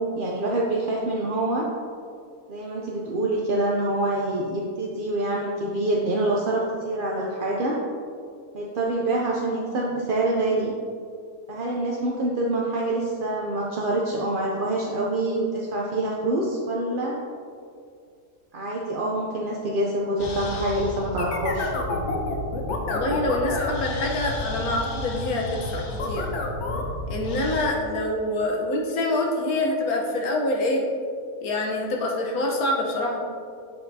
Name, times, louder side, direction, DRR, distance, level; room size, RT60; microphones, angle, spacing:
voice 1, 0.0-1.7 2.5-7.8 8.5-10.7 11.5-17.2 18.5-21.7, right 1 dB, 55° right, -2 dB, 0.6 m, -26 dB
sound 1, 20.2-27.7, left 2 dB, 60° left, 1.0 m, -30 dB
voice 2, 22.9-26.4 27.1-30.8 31.4-33.2, left 1 dB, 80° left, 0 dB, 1.4 m, -26 dB
7.7 x 6.2 x 2.7 m, 2.3 s
omnidirectional pair, 1.6 m